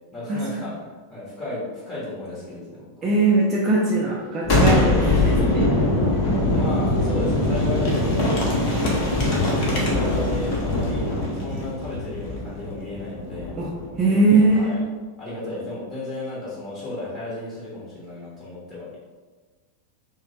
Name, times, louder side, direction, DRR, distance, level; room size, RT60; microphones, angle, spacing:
voice 1, 0.1-0.7 1.1-3.1 4.7-5.6 6.5-9.1 9.4-11.1 11.4-13.5 14.1-14.8 15.2-19.0, left 2 dB, 25° left, -8 dB, 1.1 m, -34 dB
voice 2, 3.0-5.7 13.6-13.7 14.0-14.7, right 2 dB, 25° right, -4 dB, 0.4 m, -20 dB
Boom, 4.4-14.0, left 2 dB, 45° left, 0.9 m, -22 dB
3.1 x 2.1 x 3.8 m, 1.4 s
figure-of-eight pair, 90°, 0 cm